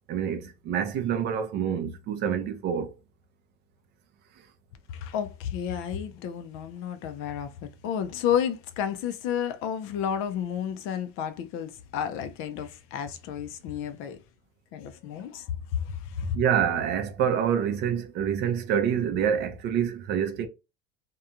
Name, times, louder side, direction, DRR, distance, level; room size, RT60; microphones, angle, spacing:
voice 1, 0.1-2.9 16.3-20.5, right 8 dB, 35° right, 0.4 m, -27 dB
voice 2, 4.9-14.2 14.7-16.4, left 8 dB, 45° left, 0.4 m, -31 dB
2.8 x 2.2 x 2.4 m
cardioid pair, 160°, 29 cm